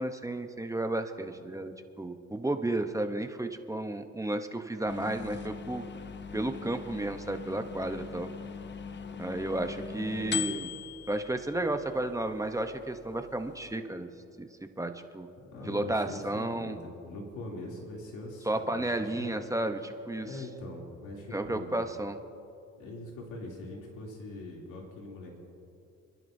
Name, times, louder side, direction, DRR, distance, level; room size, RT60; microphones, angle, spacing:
voice 1, 0.0-5.8 6.3-8.3 9.2-10.7 11.1-14.1 14.4-14.5 14.8-15.3 15.7-16.8 18.4-20.4 21.3-22.2, right 1 dB, 10° right, 7 dB, 0.8 m, -32 dB
sound 1, 4.9-13.7, left 7 dB, 35° left, 0.7 m, -41 dB
voice 2, 10.1-10.4 15.5-19.4 20.2-21.8 22.8-25.4, left 2 dB, 85° left, -2 dB, 2.9 m, -42 dB
29.5 x 11.0 x 2.7 m, 2.6 s
cardioid pair, 90°, 30 cm